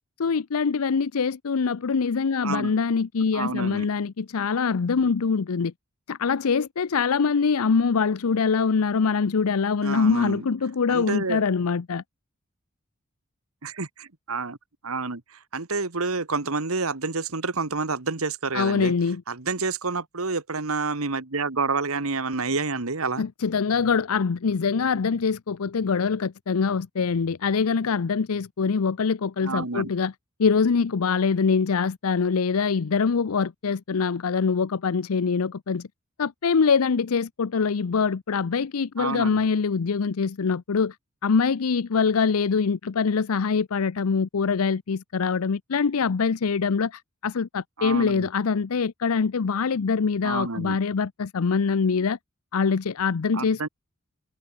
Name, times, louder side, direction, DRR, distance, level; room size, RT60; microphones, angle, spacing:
voice 1, 0.2-5.7 6.1-12.0 18.5-19.2 23.2-30.1 30.4-35.9 36.2-40.9 41.2-52.2 52.5-53.7, left 5 dB, 90° left, 0.6 m, -24 dB
voice 2, 2.4-2.7 3.3-3.9 9.8-10.5 10.9-11.4 13.6-14.6 14.8-18.9 19.3-23.3 29.4-29.9 39.0-39.4 47.8-48.3 50.2-50.8 53.3-53.7, right 4 dB, 80° right, 1.7 m, -29 dB
head